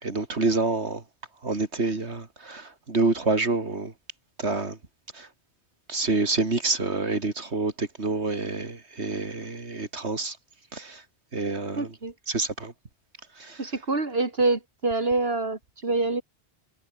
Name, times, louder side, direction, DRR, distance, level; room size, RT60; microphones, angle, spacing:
voice 1, 0.0-1.0 1.4-3.9 4.4-4.8 5.2-5.3 5.9-10.4 10.7-11.0 11.3-11.9 12.3-12.7 13.4-13.6, right 3 dB, 90° right, 3.2 m, -27 dB
voice 2, 11.7-12.1 13.6-16.2, right 3 dB, 65° right, 2.8 m, -26 dB
omnidirectional pair, 1.1 m